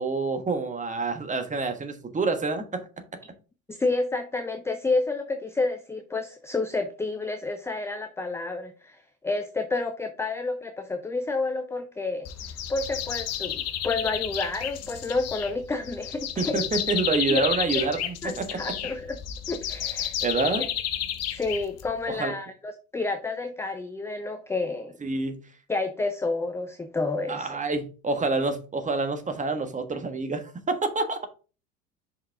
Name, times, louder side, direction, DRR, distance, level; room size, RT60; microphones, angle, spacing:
voice 1, 0.0-2.8 16.4-18.6 20.2-20.7 22.1-22.3 25.0-25.4 27.3-31.3, right 3 dB, 15° right, 1.4 m, -27 dB
voice 2, 3.7-12.3 12.7-16.6 17.3-17.5 18.2-19.2 19.5-20.1 21.3-25.0 25.7-27.6, left 3 dB, 5° left, 0.5 m, -30 dB
sound 1, 12.3-22.1, left 10 dB, 35° left, 1.0 m, -31 dB
5.7 x 5.3 x 3.7 m
figure-of-eight pair, 75°, 44 cm